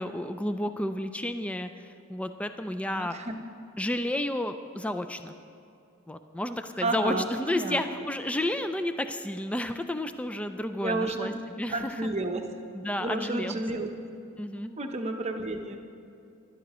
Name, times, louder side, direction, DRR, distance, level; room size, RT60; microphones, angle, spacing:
voice 1, 0.0-3.2 3.8-5.3 6.1-12.0 12.7-13.6 14.4-14.7, left 1 dB, 5° left, 8 dB, 0.3 m, -31 dB
voice 2, 2.8-3.4 6.8-7.8 10.8-11.4 11.7-12.4 12.8-13.9 14.8-15.8, right 2 dB, 30° right, 4 dB, 0.8 m, -31 dB
18.5 x 11.5 x 3.0 m, 2.6 s
head